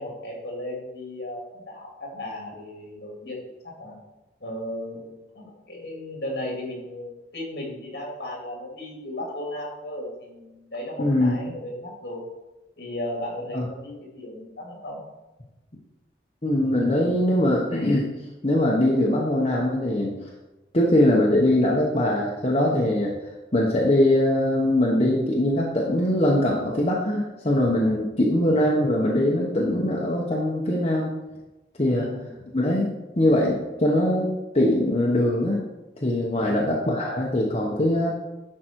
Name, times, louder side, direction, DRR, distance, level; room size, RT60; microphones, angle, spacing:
voice 1, 0.0-4.0 4.4-12.2 12.8-15.0 31.9-32.3 36.3-36.6, left 1 dB, 65° left, -2 dB, 2.9 m, -35 dB
voice 2, 11.0-11.3 13.5-13.7 16.4-18.1 18.4-20.2 20.7-23.2 23.5-31.1 31.8-32.1 32.5-35.7 36.0-38.1, left 1 dB, 35° left, -3 dB, 1.1 m, -22 dB
11.0 x 5.0 x 4.6 m, 1.0 s
head